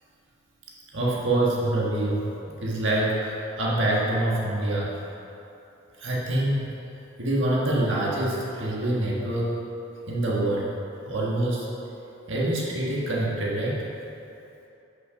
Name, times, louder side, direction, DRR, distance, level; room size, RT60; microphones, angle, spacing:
voice 1, 0.9-2.1 2.6-4.9 6.0-6.7 7.2-9.6 10.1-10.7 11.0-11.6 12.3-13.8, right 1 dB, 65° right, -5 dB, 1.5 m, -25 dB
6.3 x 5.9 x 5.6 m, 2.9 s
head